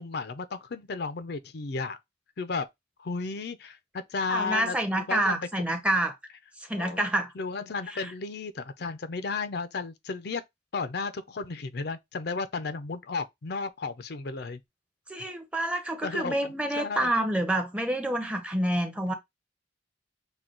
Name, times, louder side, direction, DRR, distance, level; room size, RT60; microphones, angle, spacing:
voice 1, 0.0-2.0 2.4-2.7 3.0-5.4 6.8-7.0 7.4-10.4 10.7-14.6 16.0-17.1, left 4 dB, 60° left, 0.5 m, -34 dB
voice 2, 4.3-6.1 6.7-7.3 7.9-8.1 15.1-19.1, right 1 dB, 5° right, 0.7 m, -28 dB
6.0 x 2.3 x 3.8 m
head